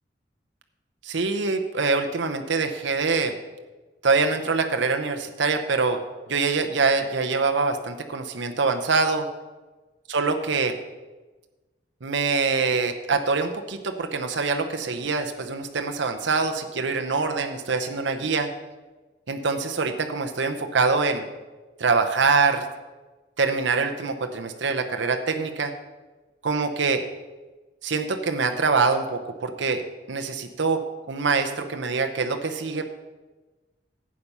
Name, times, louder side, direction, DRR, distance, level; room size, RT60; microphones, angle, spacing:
voice 1, 1.0-3.3 4.0-6.0 6.3-9.3 10.1-10.7 12.0-18.5 19.3-21.3 21.8-22.6 23.4-25.7 26.4-27.0 27.8-29.8 30.1-30.8 31.1-32.9, right 4 dB, 80° right, 6 dB, 0.8 m, -24 dB
11.5 x 8.5 x 5.5 m, 1.2 s
head